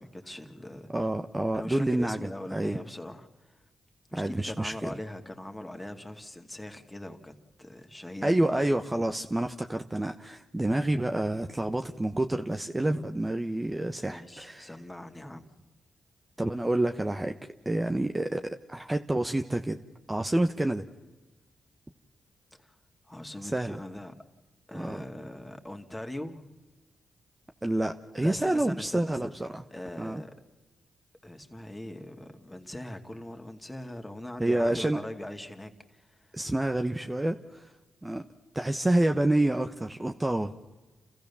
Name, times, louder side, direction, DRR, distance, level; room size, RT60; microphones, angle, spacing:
voice 1, 0.0-0.9 1.5-3.6 4.1-7.3 7.6-8.5 14.0-15.5 22.5-22.8 23.0-24.1 24.7-26.4 28.2-29.3 29.7-30.3 31.2-36.4, left 1 dB, 15° left, 5 dB, 2.4 m, -41 dB
voice 2, 0.9-2.8 4.1-4.9 8.2-14.7 16.4-17.3 17.6-19.8 20.1-20.8 23.4-23.8 24.7-25.0 27.6-29.6 30.0-30.2 34.4-35.0 36.3-37.6 38.0-38.2 38.5-40.6, right 1 dB, 20° right, 6 dB, 1.0 m, -28 dB
30.0 x 14.5 x 7.1 m, 1.2 s
supercardioid pair, 55°, 0 cm